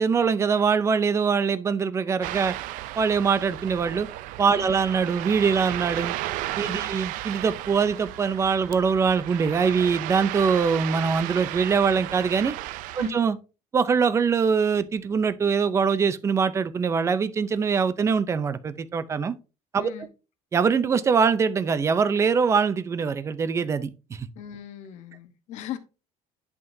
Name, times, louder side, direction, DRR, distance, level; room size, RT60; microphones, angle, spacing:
voice 1, 0.0-2.5 3.0-4.1 4.4-6.2 6.6-12.6 13.0-13.4 13.7-19.3 19.7-19.9 20.5-24.3, right 6 dB, 20° right, 0.5 m, -23 dB
Ocean, 2.2-13.1, right 16 dB, 75° right, 0.5 m, -34 dB
voice 2, 6.6-6.9 13.0-13.2 19.8-20.1 24.4-25.8, left 10 dB, 60° left, 0.9 m, -39 dB
10.5 x 5.8 x 2.7 m
cardioid pair, 175°, 14 cm